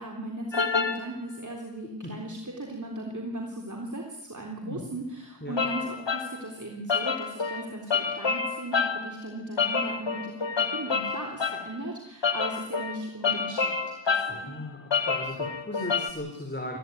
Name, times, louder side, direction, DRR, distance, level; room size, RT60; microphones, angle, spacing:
voice 1, 0.0-14.6, right 1 dB, 40° right, 0 dB, 3.6 m, -37 dB
sound 1, 0.5-1.1 5.6-6.4 6.9-9.1 9.6-11.7 12.2-14.5 14.9-16.1, left 5 dB, 75° left, 1.7 m, -28 dB
voice 2, 14.3-16.8, left 1 dB, 25° left, 2 dB, 4.2 m, -37 dB
21.0 x 14.5 x 9.5 m, 0.86 s
cardioid pair, 40°, 45 cm